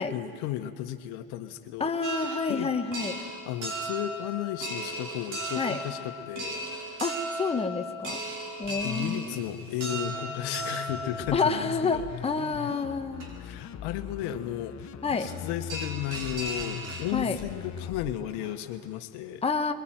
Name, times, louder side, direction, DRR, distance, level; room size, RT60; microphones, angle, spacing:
voice 1, 0.0-1.9 2.5-2.7 3.5-7.0 8.8-12.1 13.4-14.8 15.2-19.4, left 12 dB, 65° left, 8 dB, 1.5 m, -34 dB
voice 2, 1.8-3.2 5.5-5.8 7.0-8.2 8.6-9.4 11.3-13.3 15.0-15.3 17.1-17.4 19.4-19.7, left 4 dB, 15° left, 5 dB, 1.4 m, -29 dB
sound 1, 2.0-12.1 12.7-12.8 13.2-13.3 15.3-15.4 15.7-17.4 17.8-17.9 18.2-18.5, right 1 dB, 45° right, 6.7 m, -36 dB
sound 2, 8.6-18.1, left 9 dB, 40° left, 1.3 m, -41 dB
22.0 x 21.5 x 9.1 m, 2.2 s
supercardioid pair, 95°, 42 cm